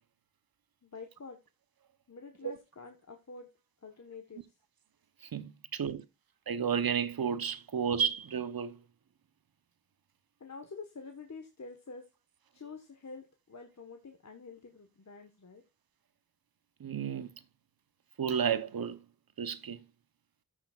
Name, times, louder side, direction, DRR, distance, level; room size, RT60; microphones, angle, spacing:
voice 1, 0.8-1.4 2.1-3.5 3.8-4.5 10.4-12.1 12.5-15.7, left 4 dB, 50° left, 1.3 m, -47 dB
voice 2, 5.3-6.0 6.5-8.8 16.8-17.3 18.2-19.0 19.4-19.8, right 7 dB, 90° right, 0.9 m, -32 dB
14.0 x 6.4 x 2.4 m
wide cardioid pair, 95°, 35 cm